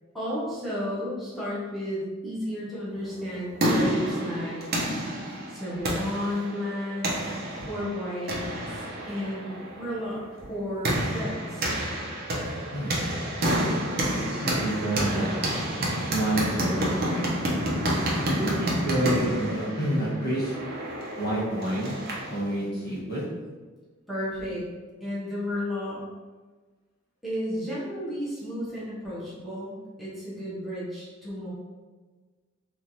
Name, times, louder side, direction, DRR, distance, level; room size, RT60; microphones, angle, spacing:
voice 1, 0.1-4.6 5.5-7.1 7.6-8.4 8.8-10.2 10.5-11.7 24.1-24.6 25.0-26.0 27.2-31.5, equal, ahead, -11 dB, 0.9 m, -33 dB
sound 1, 3.2-22.4, right 1 dB, 50° right, 0.6 m, -29 dB
voice 2, 14.3-15.4 15.7-17.3 18.2-20.5 21.2-21.9 22.2-23.2, right 1 dB, 50° left, -8 dB, 1.1 m, -28 dB
3.1 x 2.4 x 2.7 m, 1.4 s
head